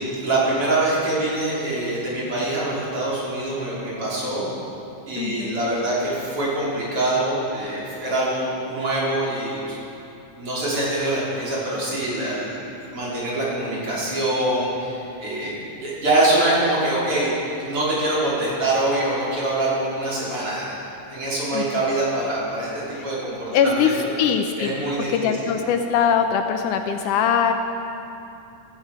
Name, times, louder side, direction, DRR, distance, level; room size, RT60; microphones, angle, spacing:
voice 1, 0.2-4.5 5.1-9.6 10.3-17.3 17.6-20.8 21.1-24.1 24.6-25.6, right 1 dB, 40° right, -7 dB, 4.5 m, -24 dB
voice 2, 5.2-5.6 21.5-21.6 23.0-23.1 23.5-24.7 25.1-27.5, left 7 dB, 80° left, 6 dB, 2.1 m, -21 dB
16.5 x 15.0 x 4.9 m, 2.8 s
omnidirectional pair, 3.8 m